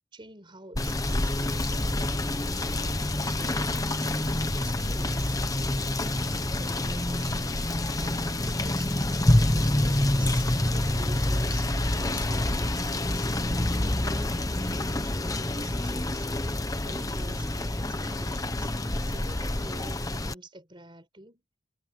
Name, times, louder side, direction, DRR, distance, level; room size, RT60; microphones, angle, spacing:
voice 1, 0.0-2.3 3.2-5.4 6.0-16.3 16.8-21.4, right 1 dB, 25° right, 4.5 m, -47 dB
Rain / Motor vehicle (road), 0.7-20.3, left 1 dB, 15° left, 1.0 m, -27 dB
head